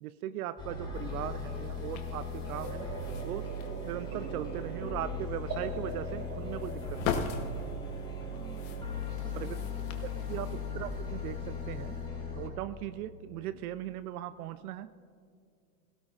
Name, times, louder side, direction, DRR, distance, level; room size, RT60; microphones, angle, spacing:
voice 1, 0.0-2.9 3.2-3.5 3.8-7.3 9.4-9.6 10.0-12.0 12.3-14.9, right 12 dB, 75° right, 13 dB, 0.6 m, -39 dB
sound 1, 0.6-12.5, left 3 dB, 10° left, 2.7 m, -38 dB
sound 2, 0.9-12.1, left 7 dB, 40° left, 1.1 m, -42 dB
sound 3, 2.5-7.6, right 4 dB, 40° right, 3.2 m, -43 dB
voice 2, 8.3-9.9 10.1-10.7, right 1 dB, 10° right, 1 dB, 1.4 m, -53 dB
20.0 x 17.0 x 2.5 m, 2.2 s
supercardioid pair, 145°, 45 cm